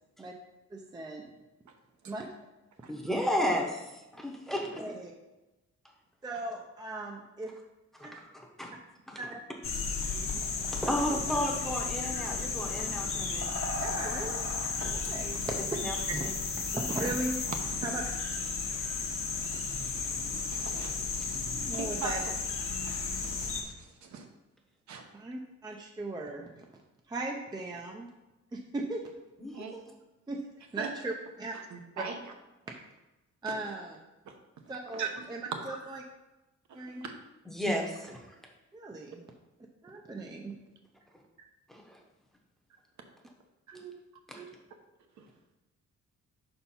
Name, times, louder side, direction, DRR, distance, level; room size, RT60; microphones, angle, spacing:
voice 1, 0.7-1.3 2.1-2.3 4.8-5.1 6.2-7.5 8.0-8.1 9.2-9.4 10.1-10.4 11.1-11.2 13.8-14.5 14.9-15.8 16.1-16.2 16.7-17.5 17.8-18.0 21.5-22.3 25.1-26.6 27.1-28.1 28.5-29.0 30.3-31.5 32.0-32.1 32.7-32.8 33.4-34.0 34.7-36.0 36.7-37.0 38.7-39.2 39.8-40.6 43.7-43.9 44.3-44.5, right 2 dB, 15° right, 1 dB, 0.5 m, -38 dB
voice 2, 2.9-4.8 7.9-8.1 8.6-8.7 9.1-9.2 10.6-13.6 15.8-16.3 29.4-29.6 37.5-38.2 41.7-42.0 44.3-44.4, equal, ahead, 0 dB, 0.8 m, -33 dB
sound 1, 9.6-23.6, left 4 dB, 45° left, 0.9 m, -34 dB
voice 3, 20.3-21.4 21.7-22.2 22.9-24.3 24.9-25.0 29.5-29.8 30.8-30.9 31.5-32.2 33.4-33.5 34.3-34.4 34.9-35.9 36.7-37.1 43.7-43.8 44.3-44.4 45.2-45.3, right 5 dB, 70° right, 4 dB, 0.9 m, -41 dB
5.6 x 4.4 x 5.5 m, 1.0 s
wide cardioid pair, 170°, 30 cm